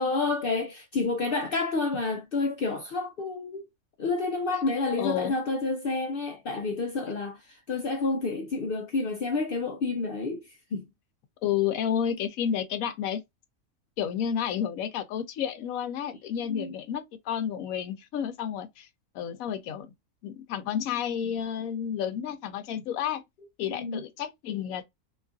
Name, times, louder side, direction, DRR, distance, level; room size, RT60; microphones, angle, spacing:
voice 1, 0.0-3.7 4.0-10.9 16.4-16.7 23.7-24.0, left 3 dB, 65° left, 0.5 m, -29 dB
voice 2, 5.0-5.3 11.4-13.2 14.0-18.9 19.1-19.9 20.2-23.2 23.6-24.8, left 9 dB, 80° left, 1.0 m, -31 dB
2.9 x 2.4 x 2.5 m
omnidirectional pair, 1.5 m